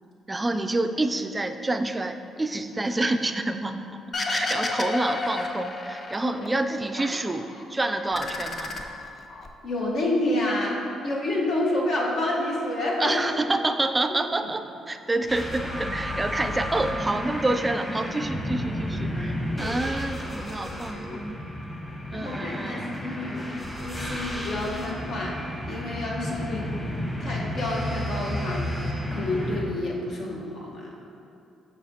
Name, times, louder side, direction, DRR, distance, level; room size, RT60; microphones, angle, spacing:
voice 1, 0.3-8.7 13.0-21.4 22.1-23.0, right 2 dB, 20° right, 7 dB, 0.3 m, -28 dB
sound 1, 4.1-6.5 6.8-7.6 8.0-9.5, left 3 dB, 40° left, 0.5 m, -31 dB
voice 2, 9.6-13.2 19.6-19.8 20.4-21.2 22.1-23.4 23.8-25.3 25.7-26.7 27.2-31.0, left 1 dB, 70° left, -4 dB, 1.2 m, -29 dB
sound 2, 15.3-29.6, equal, 10° left, 0.9 m, -32 dB
6.9 x 5.6 x 2.8 m, 2.6 s
cardioid pair, 90°, 0 cm